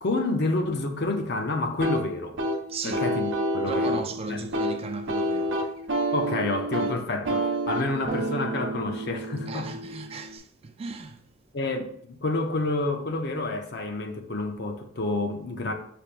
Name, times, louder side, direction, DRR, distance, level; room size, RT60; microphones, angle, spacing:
voice 1, 0.0-2.4 2.8-4.4 6.1-9.7 11.5-15.7, left 2 dB, 60° left, 0.6 m, -29 dB
sound 1, 1.8-10.4, right 1 dB, 75° right, 0.8 m, -29 dB
voice 2, 2.7-3.0 3.6-5.6 9.5-11.2, right 4 dB, 30° right, 0.3 m, -36 dB
5.7 x 3.4 x 2.5 m
head